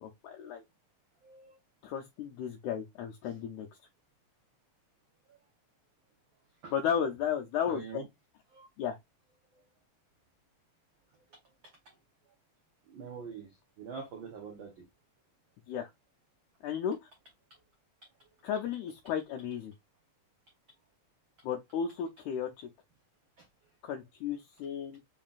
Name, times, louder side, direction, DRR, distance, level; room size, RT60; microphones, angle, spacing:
voice 1, 0.0-0.6 1.8-3.7 6.7-8.0 8.8-9.0 15.7-15.9 16.6-17.0 18.4-19.7 21.4-22.7 23.8-25.0, left 8 dB, 80° left, 2.0 m, -34 dB
voice 2, 1.2-1.6 3.2-3.3 5.3-5.4 6.6-6.7 7.7-8.0 8.5-8.7 9.5-9.7 11.1-11.4 11.8-11.9 12.9-14.9 23.4-23.5, right 6 dB, 90° right, 1.1 m, -45 dB
5.5 x 3.7 x 2.4 m
omnidirectional pair, 3.5 m